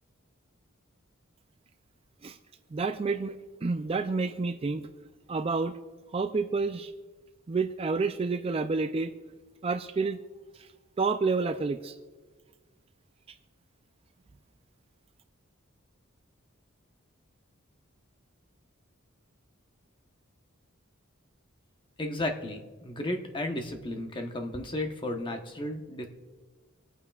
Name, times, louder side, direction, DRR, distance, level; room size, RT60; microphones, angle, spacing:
voice 1, 2.7-3.4 3.6-4.9 5.3-5.8 6.1-6.9 7.5-9.1 9.6-10.2 11.0-11.9, right 4 dB, 25° right, 9 dB, 0.4 m, -29 dB
voice 2, 22.0-26.1, left 1 dB, 25° left, 3 dB, 0.9 m, -34 dB
26.0 x 8.8 x 2.4 m, 1.4 s
head